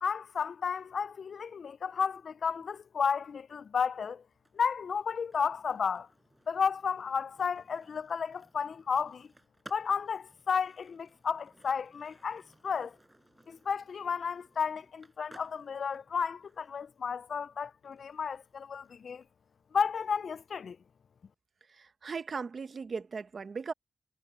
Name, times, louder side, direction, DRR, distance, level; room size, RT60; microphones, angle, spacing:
voice 1, 0.0-4.2 4.5-6.1 6.5-9.3 9.7-13.0 13.5-19.2 19.7-20.8, left 6 dB, 70° left, 0.3 m, -33 dB
Skateboard, 4.3-20.2, right 1 dB, 10° right, 7.9 m, -61 dB
voice 2, 21.7-23.7, right 5 dB, 50° right, 0.8 m, -38 dB
wide cardioid pair, 145°, 0 cm